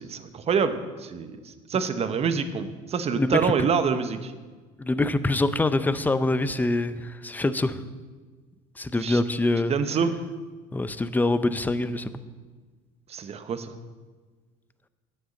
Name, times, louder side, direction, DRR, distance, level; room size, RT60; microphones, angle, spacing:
voice 1, 0.0-4.3 9.0-9.2 9.7-10.1 13.1-13.8, right 6 dB, 40° right, 10 dB, 0.9 m, -26 dB
voice 2, 3.1-3.5 4.8-7.8 8.8-9.7 10.7-12.2, left 2 dB, 10° left, 13 dB, 0.5 m, -25 dB
9.3 x 6.6 x 7.1 m, 1.4 s
supercardioid pair, 90°, 17 cm